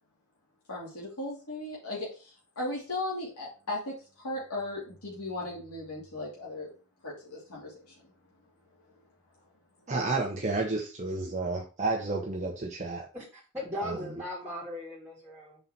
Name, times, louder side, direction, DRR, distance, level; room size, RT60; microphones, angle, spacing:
voice 1, 0.7-3.9 4.2-6.7 7.0-7.9, left 2 dB, 80° left, -4 dB, 2.5 m, -37 dB
voice 2, 9.9-13.1 13.8-14.1, right 3 dB, 30° right, 0 dB, 0.9 m, -31 dB
voice 3, 13.5-15.6, left 1 dB, 10° right, -7 dB, 2.3 m, -37 dB
5.6 x 4.1 x 5.8 m, 0.34 s
head